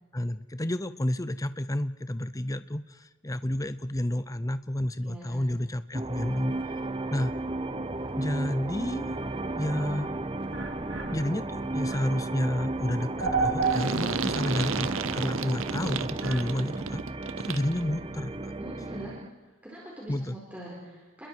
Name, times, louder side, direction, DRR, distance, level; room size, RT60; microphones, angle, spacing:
voice 1, 0.1-6.5 7.1-7.3 8.2-9.1 9.6-10.1 11.1-17.0 17.4-18.4 20.1-20.4, left 1 dB, 15° left, 13 dB, 0.7 m, -30 dB
voice 2, 5.0-5.4 18.6-19.2 19.6-21.3, right 1 dB, 5° right, -5 dB, 4.5 m, -43 dB
sound 1, 5.9-19.3, right 2 dB, 25° right, 0.8 m, -34 dB
sound 2, 7.6-16.5, right 4 dB, 85° right, 4.1 m, -36 dB
sound 3, 13.6-17.8, right 5 dB, 70° right, 0.7 m, -33 dB
29.5 x 21.5 x 4.7 m, 1.2 s
head